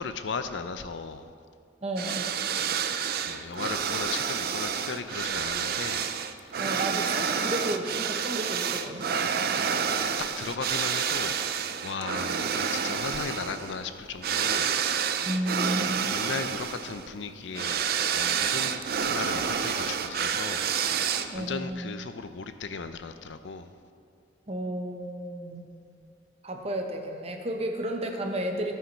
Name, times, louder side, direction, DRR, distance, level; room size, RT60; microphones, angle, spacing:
voice 1, 0.0-1.3 3.3-6.1 9.6-10.1 10.4-15.3 15.9-23.7, left 5 dB, 75° left, 10 dB, 0.5 m, -37 dB
voice 2, 1.8-2.3 6.6-9.3 15.3-16.1 21.3-21.9 24.5-25.7 26.4-28.8, right 1 dB, 35° right, 3 dB, 0.9 m, -32 dB
sound 1, 2.0-21.5, right 7 dB, 55° right, 0.4 m, -29 dB
13.0 x 5.7 x 5.3 m, 2.2 s
head